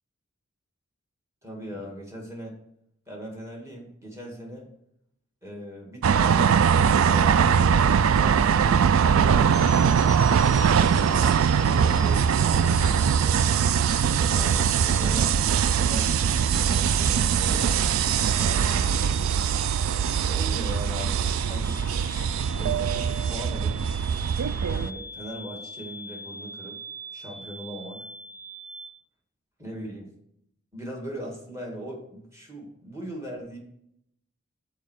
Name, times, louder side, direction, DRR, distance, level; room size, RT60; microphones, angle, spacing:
voice 1, 1.4-2.6 3.1-4.7 5.4-7.8 8.1-9.7 10.7-13.4 14.2-16.2 16.5-17.8 18.4-19.2 20.3-21.2 21.5-22.0 22.6-23.8 24.7-26.8 27.1-28.0 29.6-30.1 30.7-33.6, equal, 15° right, -1 dB, 1.9 m, -39 dB
sound 1, 6.0-24.9, right 7 dB, 70° right, 0.3 m, -22 dB
sound 2, 9.5-28.9, right 2 dB, 40° right, 1.5 m, -42 dB
7.2 x 4.5 x 6.4 m, 0.74 s
head